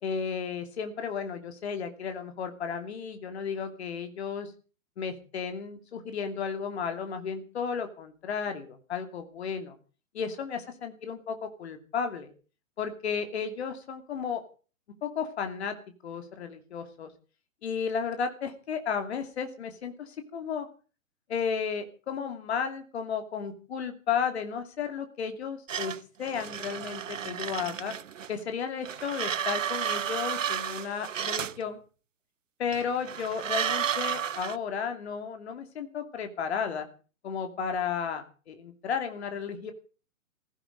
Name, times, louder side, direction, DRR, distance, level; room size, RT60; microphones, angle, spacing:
voice 1, 0.0-4.5 5.0-9.7 10.1-12.3 12.8-14.4 15.0-15.8 16.0-17.1 17.6-20.7 21.3-27.9 28.3-31.8 32.6-36.9 37.2-39.7, left 6 dB, 50° left, 6 dB, 2.8 m, -33 dB
sound 1, 25.7-28.4 28.8-31.6 32.7-34.6, right 9 dB, 65° right, 0.7 m, -32 dB
16.0 x 16.0 x 5.3 m, 0.38 s
figure-of-eight pair, 120°, 42 cm